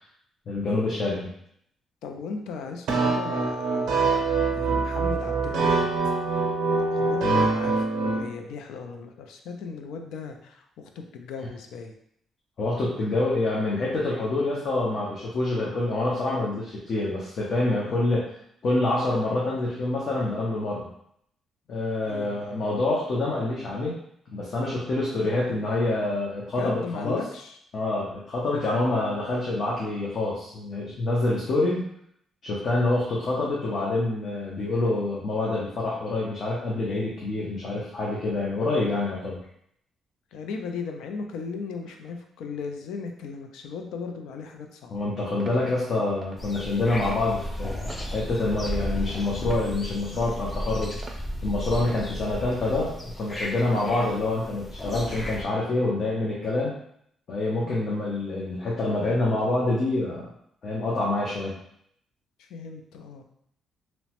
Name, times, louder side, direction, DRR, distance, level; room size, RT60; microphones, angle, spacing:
voice 1, 0.5-1.3 12.6-18.3 18.6-20.9 21.7-23.9 24.3-27.2 27.7-31.9 32.4-39.4 44.9-51.0 51.4-56.7 57.3-60.3 60.6-61.5, left 2 dB, 55° left, -5 dB, 0.7 m, -26 dB
voice 2, 2.0-3.9 4.5-5.9 6.9-11.9 17.8-18.1 22.0-22.7 25.4-25.5 26.6-27.6 40.3-44.9 57.6-57.9 62.4-63.2, left 5 dB, 90° left, 4 dB, 0.4 m, -37 dB
sound 1, 2.9-8.2, right 3 dB, 85° right, 0.6 m, -24 dB
sound 2, 45.4-45.6 46.2-46.4 47.0-47.3 47.9-48.1 48.7-49.0 49.5-49.6 50.2-50.4 51.0-51.2 51.8-52.0 52.6-52.8, right 3 dB, 35° right, 0.4 m, -43 dB
sound 3, 46.4-55.4, equal, 20° left, 0.5 m, -34 dB
2.9 x 2.1 x 2.9 m, 0.70 s
cardioid pair, 90°, 0 cm